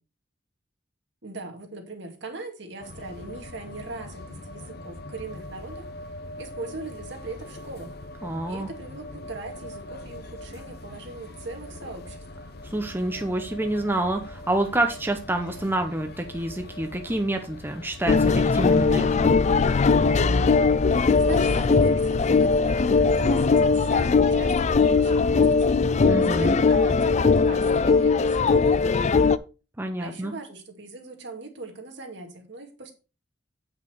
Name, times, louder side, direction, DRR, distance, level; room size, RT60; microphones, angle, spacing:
voice 1, 1.2-5.8 6.4-7.9 8.5-12.2 21.1-25.9 26.2-29.3 30.0-32.9, right 3 dB, 65° right, 3 dB, 2.3 m, -40 dB
sound 1, 2.8-19.7, left 1 dB, 55° left, 0.8 m, -42 dB
voice 2, 8.2-8.7 12.7-19.3 26.1-26.6 29.8-30.3, right 1 dB, 10° right, 5 dB, 0.8 m, -28 dB
sound 2, 18.1-29.4, left 4 dB, 40° left, 0.4 m, -20 dB
8.5 x 5.9 x 4.5 m, 0.32 s
head